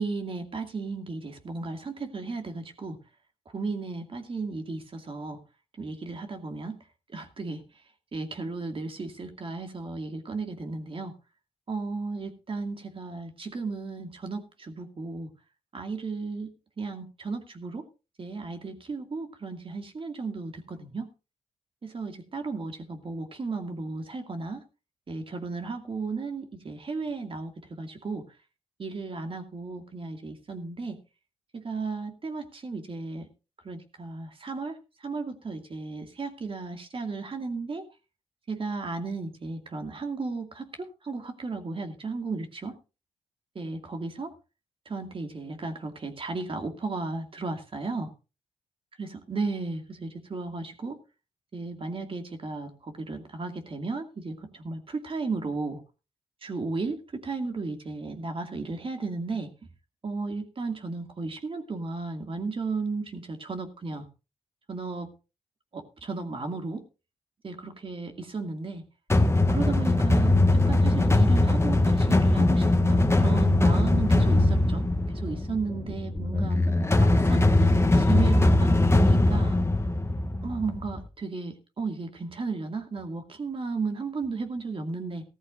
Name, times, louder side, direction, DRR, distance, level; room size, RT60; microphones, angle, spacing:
voice 1, 0.0-3.0 3.5-5.4 5.8-6.8 7.1-7.6 8.1-11.1 11.7-15.3 15.7-17.8 18.2-21.1 21.8-24.6 25.1-27.5 27.8-28.2 28.8-31.0 31.5-33.3 33.6-34.7 35.0-37.9 38.5-42.8 43.5-44.3 44.9-48.1 49.0-51.0 51.5-55.8 56.4-59.5 60.0-64.0 64.7-65.1 65.7-66.8 67.4-68.8 69.5-76.6 77.0-79.6 80.4-85.2, right 3 dB, 45° right, 5 dB, 2.3 m, -34 dB
sound 1, 69.1-81.0, left 2 dB, 20° left, 1.6 m, -21 dB
16.0 x 13.5 x 2.6 m, 0.31 s
supercardioid pair, 50°, 13 cm